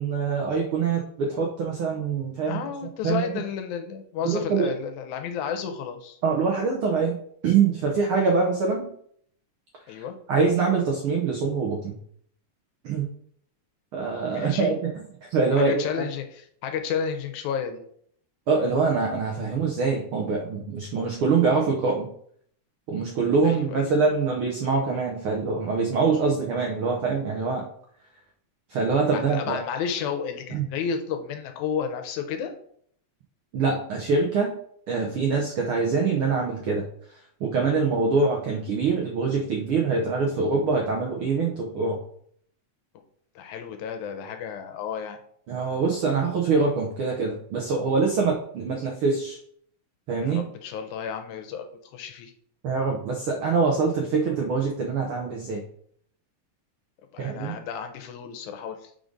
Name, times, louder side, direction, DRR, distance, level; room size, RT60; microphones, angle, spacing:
voice 1, 0.0-2.6 3.0-3.3 4.2-4.7 6.2-7.2 7.4-8.9 9.9-11.9 12.8-13.1 13.9-15.0 15.3-16.1 18.5-22.1 22.9-27.7 28.7-29.6 30.5-30.6 33.5-34.6 34.9-36.8 37.4-42.0 45.5-49.4 50.1-50.4 52.6-55.6 57.2-57.5, right 4 dB, 90° right, 1 dB, 1.1 m, -24 dB
voice 2, 2.5-6.2 9.9-10.2 14.3-14.8 15.5-17.8 23.4-23.8 29.1-32.5 43.4-45.2 50.3-51.7 51.9-52.3 57.1-58.9, left 7 dB, 80° left, 6 dB, 2.0 m, -32 dB
4.9 x 3.9 x 5.1 m, 0.63 s
omnidirectional pair, 3.4 m